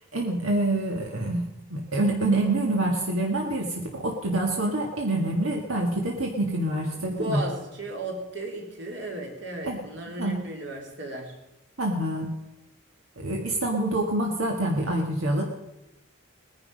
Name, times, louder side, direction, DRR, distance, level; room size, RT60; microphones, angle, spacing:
voice 1, 0.1-7.4 9.6-9.8 10.2-10.4 11.8-12.3 13.2-15.4, right 1 dB, 80° right, 0 dB, 1.8 m, -26 dB
voice 2, 6.9-11.4, right 1 dB, 55° right, 2 dB, 2.8 m, -35 dB
19.5 x 10.5 x 5.3 m, 0.96 s
head